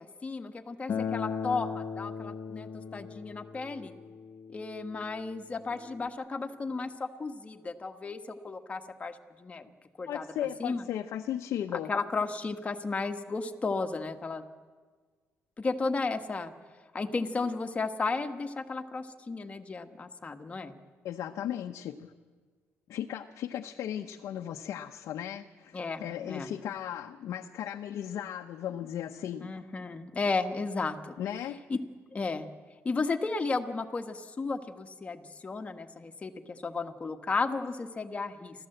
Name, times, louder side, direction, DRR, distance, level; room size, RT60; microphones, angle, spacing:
voice 1, 0.0-3.9 4.5-9.7 10.0-10.2 10.6-10.8 11.7-14.5 15.6-16.5 16.9-20.7 25.7-26.5 29.4-31.2 31.7-31.8 32.1-32.5 32.8-38.7, left 3 dB, 25° left, 6 dB, 1.4 m, -34 dB
Acoustic guitar, 0.9-6.1, left 6 dB, 50° left, 1.0 m, -38 dB
voice 2, 10.1-11.9 21.0-22.1 22.9-29.5 31.2-31.6, left 10 dB, 75° left, 4 dB, 0.9 m, -36 dB
29.0 x 13.5 x 7.9 m, 1.5 s
cardioid pair, 120°, 5 cm